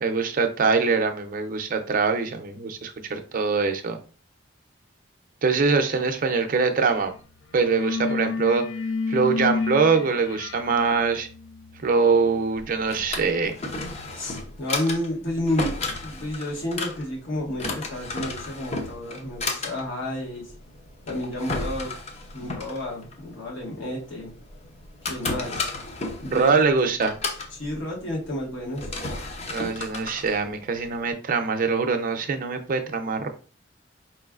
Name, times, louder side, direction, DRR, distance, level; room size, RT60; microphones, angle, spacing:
voice 1, 0.0-4.0 5.4-7.1 7.5-8.6 9.1-11.3 11.8-13.6 26.3-27.2 29.5-33.3, right 4 dB, 45° right, 6 dB, 0.5 m, -23 dB
sound 1, 6.9-7.1 7.4-14.1, left 4 dB, 90° left, 0.4 m, -32 dB
Drawer open or close, 12.6-31.1, left 3 dB, 35° left, 0.6 m, -34 dB
voice 2, 14.1-15.7 16.0-20.5 21.1-21.9 22.3-24.3 25.0-25.6 26.2-26.7 27.5-28.9, left 1 dB, 70° left, -3 dB, 1.5 m, -31 dB
4.7 x 3.1 x 2.4 m, 0.38 s
head